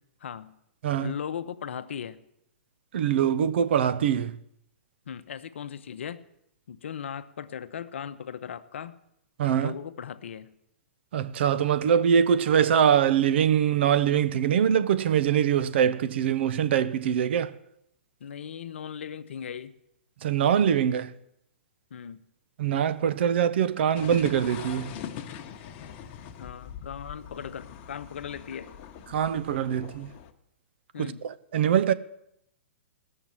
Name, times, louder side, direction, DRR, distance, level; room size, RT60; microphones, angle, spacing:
voice 1, 0.2-0.6 1.0-2.2 5.1-6.3 6.7-9.0 9.5-10.5 18.2-19.7 21.9-22.2 26.4-28.7 30.9-31.2, left 8 dB, 75° left, 0.8 m, -38 dB
voice 2, 2.9-4.4 9.4-9.7 11.1-17.5 20.2-21.1 22.6-25.0 29.1-30.1 31.0-31.9, right 8 dB, 60° right, 0.7 m, -23 dB
sound 1, 23.9-30.3, left 9 dB, 40° left, 1.1 m, -42 dB
16.5 x 6.6 x 7.4 m
hypercardioid pair, 130°, 7 cm